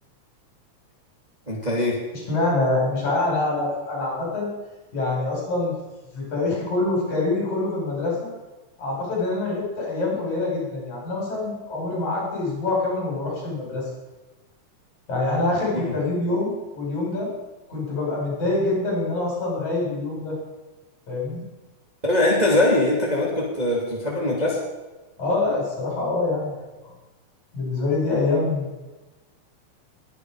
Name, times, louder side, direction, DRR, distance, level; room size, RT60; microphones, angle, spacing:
voice 1, 1.5-2.0 15.7-15.9 22.0-24.6, left 1 dB, 15° right, -3 dB, 2.5 m, -22 dB
voice 2, 2.1-4.5 4.9-5.7 6.1-8.3 8.8-13.9 15.1-17.3 17.7-20.4 21.1-21.4 25.2-26.5 26.8-26.9 27.5-28.8, left 2 dB, 60° left, -4 dB, 6.8 m, -25 dB
21.5 x 10.0 x 5.0 m, 1.2 s
omnidirectional pair, 3.7 m